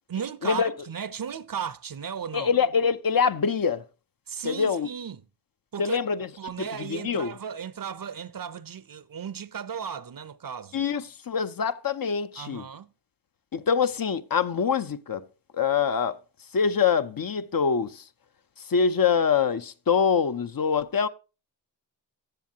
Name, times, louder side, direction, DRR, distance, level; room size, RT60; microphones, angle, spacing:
voice 1, 0.1-2.5 4.3-5.3 5.7-6.0 6.4-10.8 12.4-12.9, right 7 dB, 55° right, 0.6 m, -35 dB
voice 2, 2.3-3.8 4.4-4.9 5.8-6.3 6.6-7.3 10.7-12.6 13.5-15.3 15.5-16.2 16.5-18.0 18.7-21.1, left 6 dB, 55° left, 0.6 m, -24 dB
14.5 x 7.3 x 2.8 m
cardioid pair, 45°, 42 cm